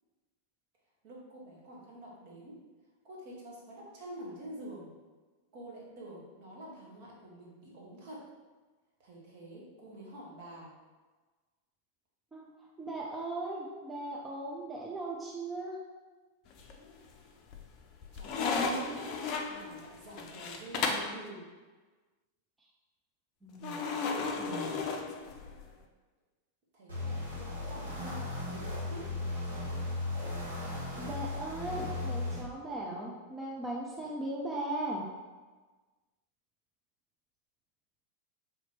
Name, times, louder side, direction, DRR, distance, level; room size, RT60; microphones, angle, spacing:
voice 1, 1.0-2.6 3.0-4.9 5.5-8.2 9.0-10.7 18.1-19.2 19.5-21.5 26.7-29.1, right 1 dB, 45° right, -3 dB, 1.3 m, -47 dB
voice 2, 12.8-15.8 23.4-24.8 30.9-35.1, right 2 dB, 10° right, -3 dB, 0.6 m, -38 dB
sound 1, 16.5-17.1 17.5-21.2 23.6-25.7, left 4 dB, 40° left, 0.5 m, -34 dB
sound 2, 26.9-32.4, left 2 dB, 75° right, 1.0 m, -36 dB
3.9 x 2.9 x 4.3 m, 1.3 s
figure-of-eight pair, 90°, 0 cm